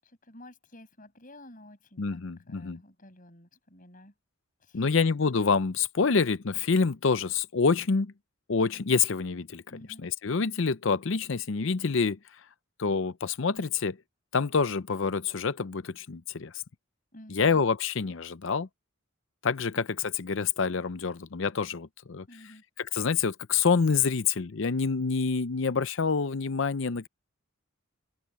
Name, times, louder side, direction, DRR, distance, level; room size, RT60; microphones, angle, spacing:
voice 1, 0.0-2.2 2.5-4.1 4.6-5.0 9.7-10.1 17.1-17.6 22.3-22.6, left 1 dB, 40° left, 7.6 m, -51 dB
voice 2, 2.0-2.8 4.7-8.1 8.5-9.6 10.0-12.2 12.8-14.0 14.3-16.5 17.3-18.7 19.4-22.3 22.8-27.1, left 5 dB, 60° left, 0.6 m, -27 dB
open air
head